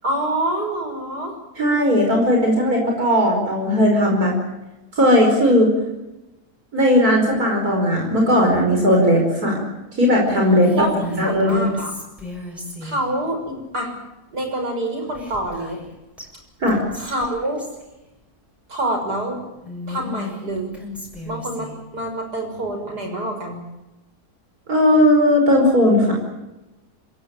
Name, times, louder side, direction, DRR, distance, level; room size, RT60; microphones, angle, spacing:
voice 1, 0.0-1.3 10.7-11.9 12.8-13.9 14.3-15.8 16.9-17.6 18.7-19.4 19.9-20.7 21.3-23.6, right 1 dB, 90° right, 3 dB, 6.9 m, -26 dB
voice 2, 1.6-4.3 4.9-5.7 6.7-9.6 10.0-10.7 11.2-11.7 16.6-16.8 24.7-26.2, equal, 65° right, 0 dB, 5.6 m, -17 dB
Whispering, 10.3-13.1 15.1-15.9 16.2-16.3 16.7-17.8 19.6-21.8, left 3 dB, ahead, 7.0 m, -33 dB
27.0 x 17.0 x 9.0 m, 1.0 s
omnidirectional pair, 1.7 m